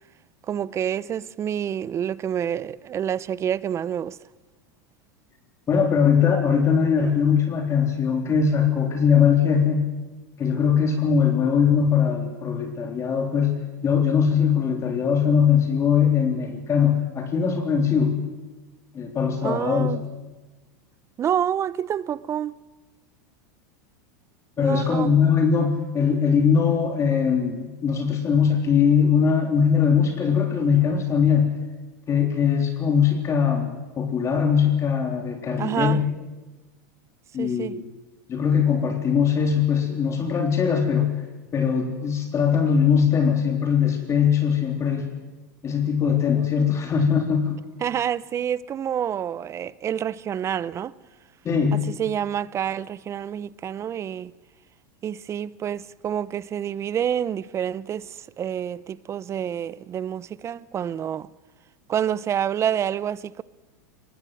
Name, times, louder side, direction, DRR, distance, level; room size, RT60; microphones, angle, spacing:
voice 1, 0.5-4.2 19.4-20.0 21.2-22.5 24.6-25.1 35.6-36.0 37.4-37.7 47.8-50.9 51.9-54.3 55.0-61.3 61.9-63.4, right 9 dB, 30° right, 0.7 m, -28 dB
voice 2, 5.7-9.9 10.4-13.6 13.8-18.2 18.9-19.9 24.6-31.6 32.1-33.7 34.0-36.0 37.3-37.8 38.3-41.1 41.5-45.1 45.6-47.6 51.4-51.9, left 7 dB, 30° left, 3.6 m, -21 dB
22.5 x 19.0 x 7.9 m
hypercardioid pair, 110°, 10 cm